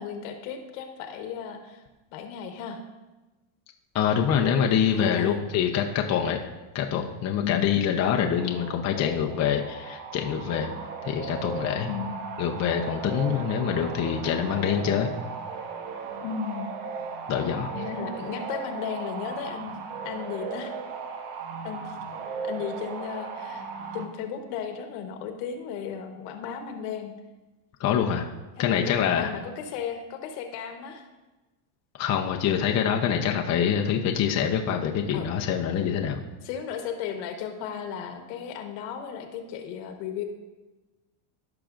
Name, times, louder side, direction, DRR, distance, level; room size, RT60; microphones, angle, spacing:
voice 1, 0.0-1.8 2.1-2.8 4.9-5.4 7.4-7.8 11.9-12.2 16.2-16.7 17.7-19.7 20.0-20.8 21.6-22.0 22.4-23.7 23.9-27.1 28.6-31.0 35.1-35.3 36.4-40.2, left 7 dB, 70° left, 6 dB, 1.3 m, -35 dB
voice 2, 3.9-6.4 6.7-10.7 11.0-11.9 12.4-15.1 17.3-17.7 27.8-28.2 28.6-29.3 32.0-36.2, left 8 dB, 35° left, 2 dB, 0.7 m, -25 dB
sound 1, 8.3-24.1, right 5 dB, 60° right, 1.1 m, -37 dB
15.5 x 5.9 x 2.5 m, 1.2 s
supercardioid pair, 120°, 49 cm